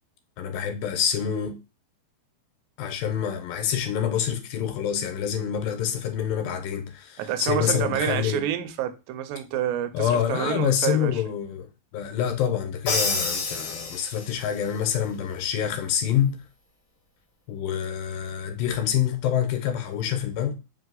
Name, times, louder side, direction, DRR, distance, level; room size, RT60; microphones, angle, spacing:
voice 1, 0.4-1.6 2.8-8.4 9.9-11.7 11.9-16.4 17.5-20.5, left 9 dB, 80° left, 2.3 m, -26 dB
voice 2, 7.2-11.3, right 11 dB, 85° right, 2.4 m, -28 dB
Crash cymbal, 12.9-14.5, left 4 dB, 65° left, 1.3 m, -28 dB
5.2 x 2.7 x 3.8 m
omnidirectional pair, 4.1 m